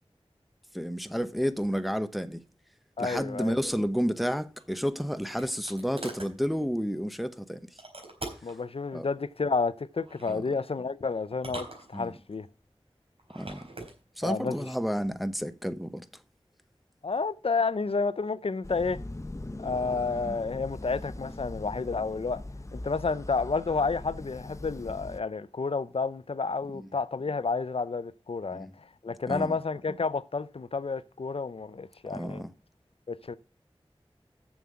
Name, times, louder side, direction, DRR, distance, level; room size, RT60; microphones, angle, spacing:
voice 1, 0.7-2.4 3.0-7.8 8.9-9.1 10.3-10.4 11.9-12.1 13.3-13.6 14.2-16.1 20.3-20.4 26.7-26.9 28.5-28.7 29.3-29.6 32.1-32.5, equal, ahead, 0.8 m, -31 dB
voice 2, 3.0-3.5 8.4-12.5 14.2-14.6 17.0-19.0 19.6-22.4 22.7-32.4 33.1-33.4, left 4 dB, 70° left, 0.5 m, -30 dB
sound 1, 4.6-6.3 7.8-8.6 10.0-10.4 11.3-12.4 13.2-13.9, right 2 dB, 70° right, 4.1 m, -42 dB
sound 2, 18.6-25.2, left 2 dB, 30° left, 0.7 m, -41 dB
7.4 x 7.1 x 7.4 m
wide cardioid pair, 55°, 10 cm